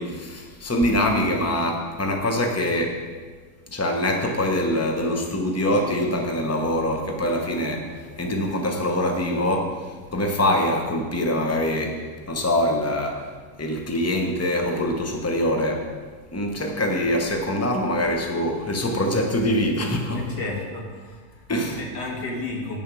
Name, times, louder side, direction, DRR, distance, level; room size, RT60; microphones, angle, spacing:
voice 1, 0.0-3.0 3.7-13.3 13.6-15.9 16.3-20.2 21.5-21.8, left 1 dB, 10° left, 2 dB, 0.8 m, -24 dB
voice 2, 20.1-21.5 21.8-22.8, left 2 dB, 90° left, 0 dB, 2.3 m, -32 dB
8.9 x 6.8 x 6.2 m, 1.5 s
omnidirectional pair, 1.7 m